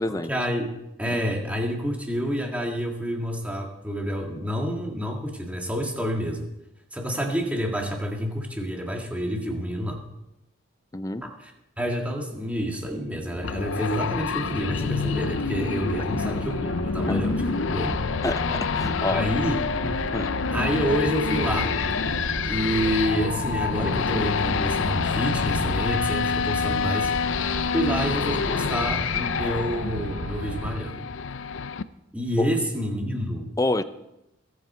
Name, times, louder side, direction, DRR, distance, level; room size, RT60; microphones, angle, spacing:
voice 1, 0.1-6.5 6.9-10.0 11.2-11.5 11.8-18.0 19.1-19.6 20.5-21.8 22.5-27.1 27.7-31.1 32.1-33.5, equal, 5° right, 1.9 m, -28 dB
voice 2, 10.9-11.3 17.1-17.2 18.2-19.3 19.8-20.3 32.4-32.5 33.6-33.8, left 2 dB, 15° left, 0.5 m, -28 dB
sound 1, 13.0-30.8, right 2 dB, 85° right, 0.7 m, -35 dB
sound 2, 13.4-31.8, left 5 dB, 75° left, 0.5 m, -27 dB
21.5 x 8.5 x 4.5 m
head